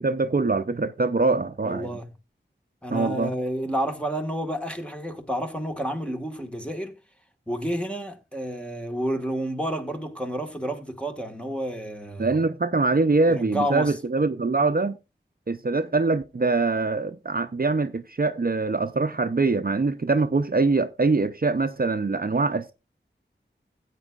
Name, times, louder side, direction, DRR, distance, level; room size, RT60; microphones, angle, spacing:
voice 1, 0.0-2.0 2.9-3.3 12.2-15.0 15.5-22.7, right 3 dB, 50° right, 0.6 m, -23 dB
voice 2, 1.6-2.1 2.8-7.0 7.5-12.3 13.3-14.0, equal, 5° left, 1.6 m, -30 dB
16.0 x 8.3 x 2.4 m
wide cardioid pair, 45°, 20 cm